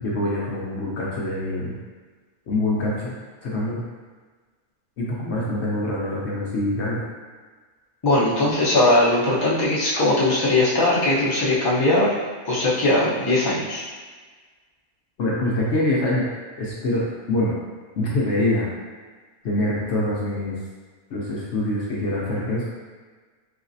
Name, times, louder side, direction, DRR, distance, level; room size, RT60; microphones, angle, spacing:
voice 1, 0.0-1.7 2.5-3.1 3.4-3.8 5.0-7.0 15.2-16.3 16.6-17.0 17.3-17.5 17.9-18.6 19.4-20.6 21.1-22.6, left 1 dB, 60° left, -5 dB, 0.8 m, -24 dB
voice 2, 8.0-12.1 12.5-13.8, left 2 dB, 25° left, -7 dB, 0.5 m, -20 dB
3.9 x 3.2 x 2.6 m, 1.4 s
omnidirectional pair, 1.5 m